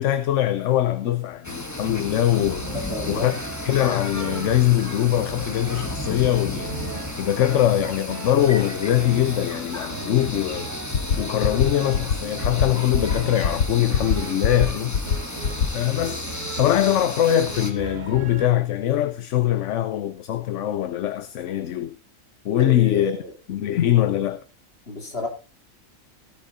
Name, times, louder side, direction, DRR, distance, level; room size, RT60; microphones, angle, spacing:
voice 1, 0.0-2.7 3.1-3.3 3.6-6.7 7.2-10.7 11.2-15.0 15.7-16.3 16.6-22.0 22.4-23.2 23.5-24.4, left 12 dB, 65° left, 1.0 m, -22 dB
sound 1, 1.4-17.7, left 1 dB, 15° left, 1.2 m, -34 dB
sound 2, 2.3-18.5, right 4 dB, 35° right, 1.2 m, -38 dB
voice 2, 2.9-3.3 22.6-23.3 24.9-25.3, left 1 dB, 45° left, 3.1 m, -31 dB
sound 3, 10.9-11.2 11.4-11.7 11.9-12.2 12.4-12.7 12.9-13.2 13.4-13.6 13.9-14.2 14.4-14.7 14.9-15.2 15.4-15.7, left 7 dB, 80° left, 1.5 m, -21 dB
16.0 x 8.7 x 4.0 m
omnidirectional pair, 1.4 m